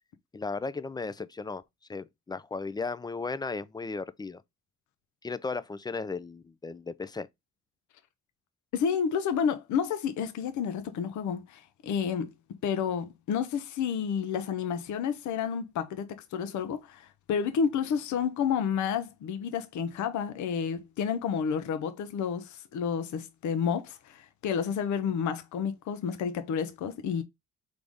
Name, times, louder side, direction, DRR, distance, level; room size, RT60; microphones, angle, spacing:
voice 1, 0.3-1.6 1.9-4.4 5.2-7.3, left 4 dB, 15° left, 0.4 m, -35 dB
voice 2, 8.7-12.3 12.6-27.2, left 7 dB, 75° left, 0.7 m, -30 dB
3.9 x 3.4 x 3.5 m
cardioid pair, 90°, 30 cm